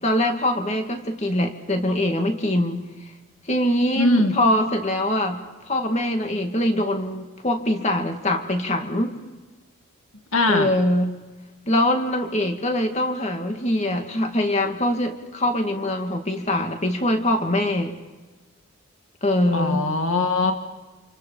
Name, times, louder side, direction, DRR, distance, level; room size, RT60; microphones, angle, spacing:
voice 1, 0.0-2.9 3.5-9.1 10.5-11.2 11.7-17.9 19.2-19.9, left 1 dB, 30° left, 4 dB, 2.4 m, -23 dB
voice 2, 4.0-4.4 10.3-10.7 19.5-20.5, left 2 dB, 75° left, 5 dB, 2.1 m, -20 dB
29.5 x 27.5 x 5.8 m, 1.2 s
head